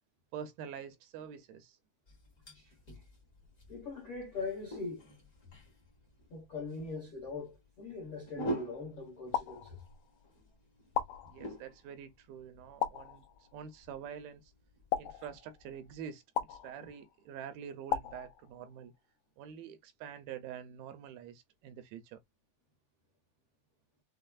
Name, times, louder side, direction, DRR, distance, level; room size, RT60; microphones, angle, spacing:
voice 1, 0.3-1.8 11.2-13.2 13.5-14.5 15.0-18.9 19.4-22.2, right 8 dB, 80° right, 2.4 m, -46 dB
sound 1, 2.1-16.1, right 1 dB, 50° left, 0.9 m, -47 dB
voice 2, 3.7-5.1 6.3-9.8 16.8-16.9, left 4 dB, 75° left, 1.3 m, -41 dB
sound 2, 9.3-10.2 10.9-11.8 12.8-13.6 14.9-15.8 16.4-17.2 17.9-18.9, left 10 dB, 90° left, 1.8 m, -37 dB
6.3 x 2.1 x 2.3 m
omnidirectional pair, 4.5 m